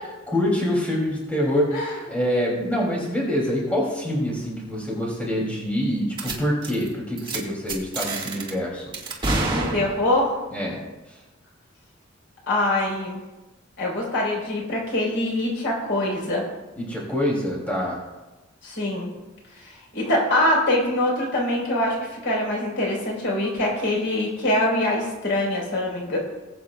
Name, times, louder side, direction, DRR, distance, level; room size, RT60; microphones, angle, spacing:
voice 1, 0.3-8.9 10.5-10.8 16.8-18.0, equal, 10° left, -4 dB, 2.9 m, -25 dB
sound 1, 6.2-6.4 6.6-6.9 7.2-7.4 7.7-8.5 8.9-10.3, right 2 dB, 25° right, 1.8 m, -27 dB
voice 2, 9.5-10.3 12.5-13.2 13.8-16.4 18.6-19.1 19.6-26.2, left 1 dB, 65° left, -3 dB, 4.3 m, -24 dB
20.0 x 8.4 x 2.4 m, 1.1 s
head